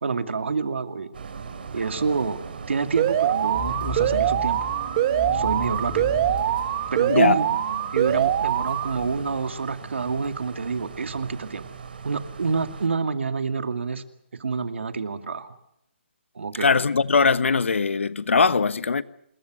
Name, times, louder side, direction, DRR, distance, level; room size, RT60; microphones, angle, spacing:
voice 1, 0.0-1.1 1.7-2.4 2.7-4.6 5.3-6.1 6.9-7.5 7.9-11.6 12.0-14.0 14.3-15.5 16.3-16.7, right 5 dB, 70° right, 2.3 m, -27 dB
sound 1, 1.1-12.9, right 5 dB, 50° right, 3.4 m, -39 dB
Alarm, 3.0-9.0, right 10 dB, 25° right, 1.3 m, -23 dB
sound 2, 3.5-7.5, left 3 dB, 5° left, 2.3 m, -36 dB
voice 2, 16.6-19.0, left 5 dB, 85° left, 1.3 m, -20 dB
27.0 x 22.0 x 6.2 m
hypercardioid pair, 170°, 7 cm